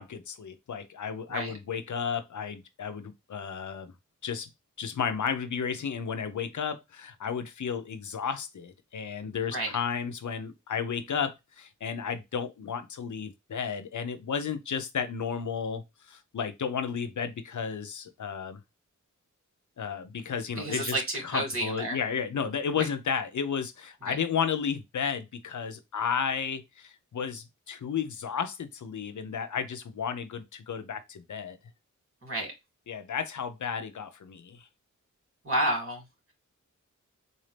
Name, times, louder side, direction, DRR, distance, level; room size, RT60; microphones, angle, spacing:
voice 1, 0.0-3.9 4.2-4.5 4.8-18.6 19.8-31.6 32.9-34.7, left 7 dB, 70° left, 0.7 m, -33 dB
voice 2, 20.6-22.0 22.8-22.9 24.1-24.2 32.2-32.5 35.4-36.0, right 1 dB, 45° right, 2.8 m, -30 dB
4.0 x 2.7 x 3.2 m
wide cardioid pair, 75°, 31 cm